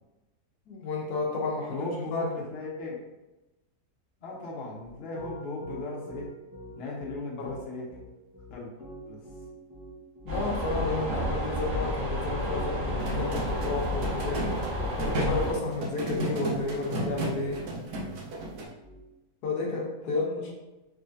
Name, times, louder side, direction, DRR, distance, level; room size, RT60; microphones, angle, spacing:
voice 1, 0.7-2.3 7.4-7.6 10.2-14.6 15.0-17.6 19.4-20.5, left 3 dB, 80° left, -1 dB, 1.2 m, -32 dB
voice 2, 1.7-3.0 4.2-6.3 6.8-8.0 8.5-8.7 9.1-9.2 20.0-20.5, left 2 dB, 50° left, -3 dB, 0.9 m, -37 dB
Piano, 4.8-19.0, equal, 15° right, 0.6 m, -45 dB
sound 1, 10.3-15.5, equal, 55° right, 1.4 m, -31 dB
sound 2, 13.0-18.6, right 1 dB, 75° right, 1.3 m, -33 dB
3.5 x 3.1 x 2.6 m, 1.0 s
omnidirectional pair, 1.7 m